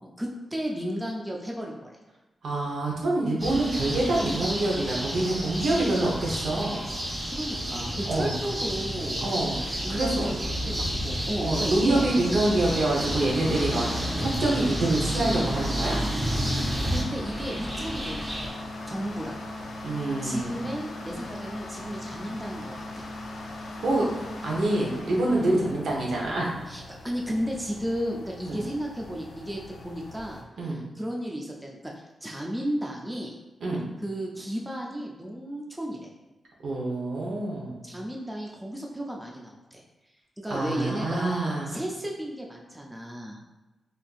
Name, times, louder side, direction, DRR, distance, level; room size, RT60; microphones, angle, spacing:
voice 1, 0.0-1.8 7.3-9.2 9.8-12.1 16.9-19.3 20.2-23.1 25.4-25.6 26.7-33.4 34.0-36.1 37.8-39.8 40.4-43.4, equal, 10° right, -1 dB, 0.4 m, -34 dB
voice 2, 2.4-6.8 8.1-8.3 9.2-10.3 11.4-13.9 14.2-16.0 19.8-20.7 23.8-24.0 24.4-26.5 28.4-28.6 30.6-30.8 33.6-33.8 36.6-37.8 40.5-41.7, right 2 dB, 80° right, -2 dB, 0.8 m, -26 dB
sound 1, 3.4-18.5, equal, 35° right, 0.8 m, -30 dB
sound 2, 11.4-30.4, left 2 dB, 90° left, 0.5 m, -40 dB
4.1 x 2.6 x 2.4 m, 1.1 s
wide cardioid pair, 165°, 0 cm